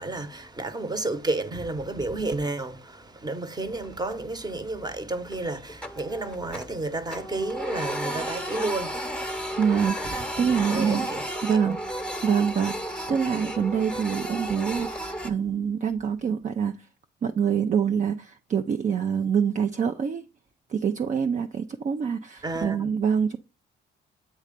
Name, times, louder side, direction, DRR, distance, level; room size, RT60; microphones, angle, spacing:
voice 1, 0.0-9.6 10.0-10.1 10.7-11.2 11.6-11.8 22.4-22.9, right 2 dB, 20° right, 1.0 m, -31 dB
Printer, 3.7-4.3 4.7-4.8 5.3-6.8 7.1-15.3, right 1 dB, 5° left, 1.0 m, -33 dB
voice 2, 9.6-11.1 11.4-11.8 12.2-16.8 17.2-20.2 20.7-23.4, right 7 dB, 40° right, 0.5 m, -25 dB
8.5 x 3.1 x 5.2 m
cardioid pair, 90°, 20 cm